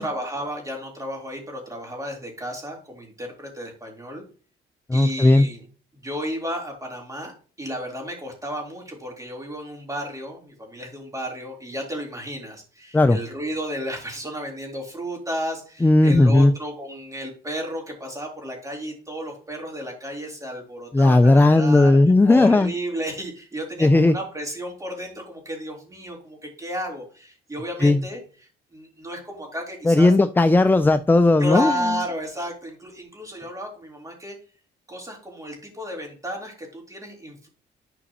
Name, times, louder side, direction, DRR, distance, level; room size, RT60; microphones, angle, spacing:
voice 1, 0.0-4.2 4.9-5.6 5.9-7.3 7.6-22.0 22.2-28.2 28.7-30.1 31.4-34.4 34.9-37.5, equal, 15° right, 0 dB, 3.6 m, -32 dB
voice 2, 4.9-5.5 12.9-13.2 15.8-16.5 20.9-22.7 23.8-24.2 27.8-28.0 29.9-31.7, left 2 dB, 10° left, 11 dB, 0.4 m, -16 dB
11.5 x 5.0 x 3.0 m, 0.39 s
cardioid pair, 90°, 20 cm